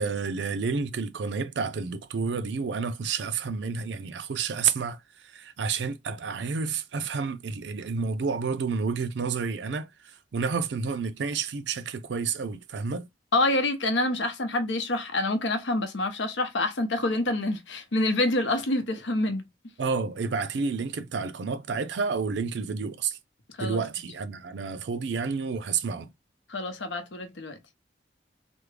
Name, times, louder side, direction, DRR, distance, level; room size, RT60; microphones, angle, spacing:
voice 1, 0.0-5.0 5.2-9.9 10.3-13.1 19.8-23.2 23.6-26.1, right 5 dB, 70° right, 0.4 m, -30 dB
voice 2, 13.3-19.4 23.6-23.8 26.5-27.6, left 2 dB, 85° left, 0.8 m, -27 dB
3.4 x 2.1 x 3.2 m
head